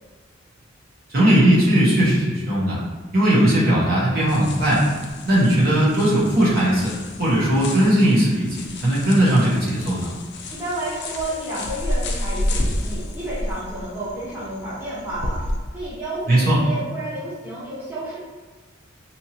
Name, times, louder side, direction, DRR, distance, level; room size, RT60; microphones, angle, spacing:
voice 1, 1.1-2.8 3.1-4.8 5.2-6.9 7.2-10.1 16.3-16.6, right 1 dB, 50° right, -8 dB, 0.8 m, -18 dB
sound 1, 4.3-15.6, left 1 dB, 60° left, 0.4 m, -31 dB
voice 2, 10.5-15.4 15.7-18.2, right 1 dB, 10° right, -10 dB, 1.0 m, -31 dB
2.8 x 2.6 x 2.8 m, 1.4 s
head